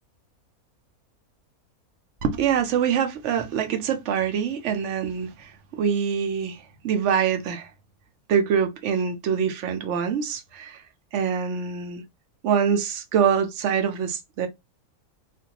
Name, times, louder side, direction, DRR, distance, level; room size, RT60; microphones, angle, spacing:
voice 1, 2.2-7.7 8.3-10.8 11.1-12.0 12.4-14.5, right 7 dB, 65° right, 0.8 m, -25 dB
2.5 x 2.2 x 2.8 m
omnidirectional pair, 1.5 m